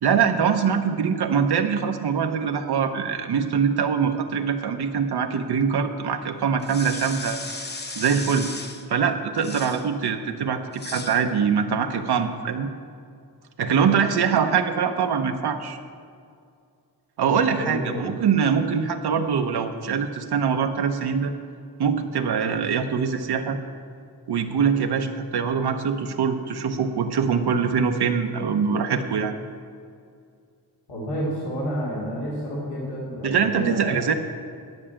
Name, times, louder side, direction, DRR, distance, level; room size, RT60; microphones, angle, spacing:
voice 1, 0.0-7.5 7.9-8.5 8.9-12.7 13.6-15.8 17.2-21.3 21.8-23.6 24.3-29.3 33.2-34.1, right 6 dB, 70° right, 5 dB, 0.8 m, -23 dB
sound 1, 6.6-8.9 9.4-9.9 10.7-11.2, left 3 dB, 25° left, 0.8 m, -36 dB
voice 2, 17.3-18.1 30.9-34.0, equal, 70° left, -6 dB, 2.6 m, -30 dB
10.5 x 6.2 x 8.8 m, 2.3 s
wide cardioid pair, 120°, 40 cm